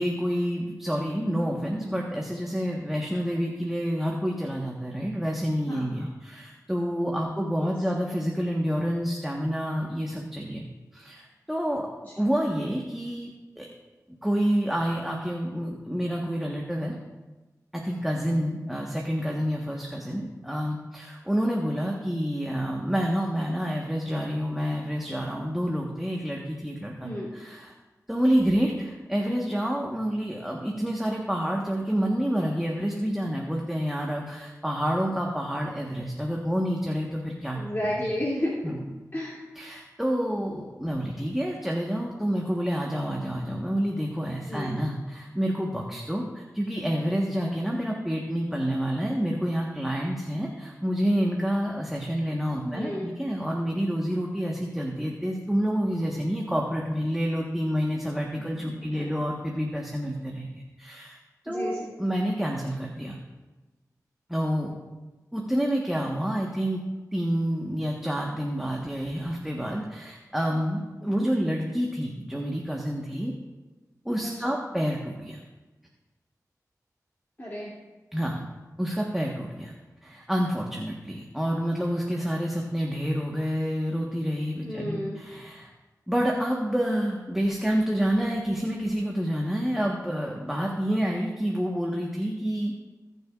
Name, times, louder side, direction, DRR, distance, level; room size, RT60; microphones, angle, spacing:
voice 1, 0.0-10.7 10.9-11.9 12.2-13.3 13.6-13.7 14.2-17.0 17.7-27.7 28.1-37.6 37.9-38.0 38.6-38.8 39.5-61.2 61.4-63.2 64.3-64.7 65.3-66.8 67.1-73.3 74.0-75.4 78.1-78.4 78.8-79.7 80.0-85.7 86.1-92.7, equal, 5° right, -1 dB, 1.3 m, -28 dB
voice 2, 27.0-27.3 37.5-38.5 39.1-39.4 44.5-44.7 52.6-53.1 58.4-58.5 61.5-61.9 71.0-71.3 74.2-74.4 77.4-77.7 84.6-85.2, equal, 30° left, -7 dB, 2.6 m, -32 dB
19.5 x 6.8 x 2.4 m, 1.2 s
cardioid pair, 50°, 7 cm